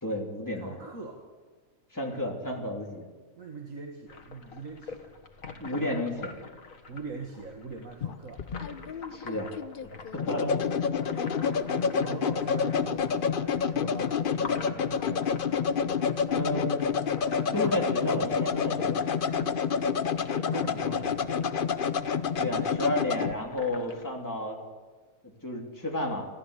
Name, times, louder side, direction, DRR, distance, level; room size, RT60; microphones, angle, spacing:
voice 1, 0.0-0.8 1.9-3.0 5.6-6.4 9.1-9.5 10.1-10.6 16.2-16.8 17.5-19.0 22.4-24.6 25.4-26.3, left 1 dB, 15° left, 0 dB, 3.3 m, -32 dB
voice 2, 0.5-1.2 3.4-5.1 6.9-8.5 11.1-15.2 20.5-21.3, right 4 dB, 75° right, 2 dB, 2.3 m, -42 dB
sound 1, 4.1-24.0, left 4 dB, 80° left, 2.1 m, -46 dB
sound 2, 8.0-23.3, left 6 dB, 45° left, 0.9 m, -28 dB
27.0 x 14.5 x 8.3 m, 1.4 s
omnidirectional pair, 1.4 m